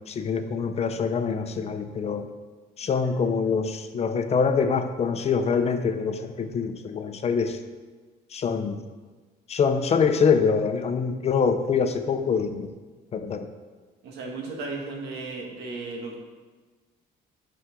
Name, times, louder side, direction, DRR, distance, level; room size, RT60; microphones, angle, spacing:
voice 1, 0.0-2.3 2.8-7.6 8.3-8.8 9.5-12.7 13.1-13.5, left 5 dB, 40° left, 8 dB, 0.7 m, -25 dB
voice 2, 14.0-16.2, right 3 dB, 80° right, 0 dB, 1.8 m, -35 dB
9.6 x 6.2 x 3.7 m, 1.3 s
cardioid pair, 110°, 17 cm